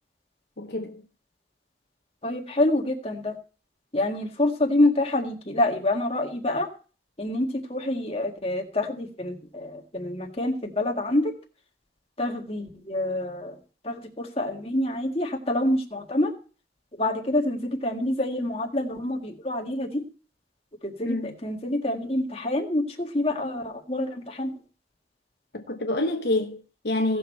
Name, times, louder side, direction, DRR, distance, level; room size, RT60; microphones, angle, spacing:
voice 1, 0.6-1.0 21.0-21.3 25.5-27.2, left 2 dB, 60° left, 1.0 m, -27 dB
voice 2, 2.2-3.3 3.9-6.7 7.2-11.3 12.2-13.6 13.8-16.3 17.0-20.0 20.8-24.5, left 1 dB, 30° left, 1.8 m, -27 dB
17.0 x 6.6 x 4.4 m
head